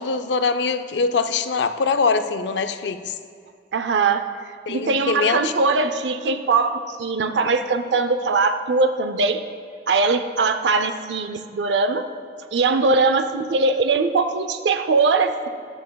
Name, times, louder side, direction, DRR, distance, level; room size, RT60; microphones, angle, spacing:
voice 1, 0.0-3.1 4.7-5.5, left 4 dB, 85° left, 10 dB, 0.5 m, -23 dB
voice 2, 3.7-4.3 4.7-9.4 9.9-12.1 12.5-15.5, right 3 dB, 85° right, 8 dB, 0.5 m, -21 dB
13.5 x 10.5 x 2.3 m, 2.3 s
head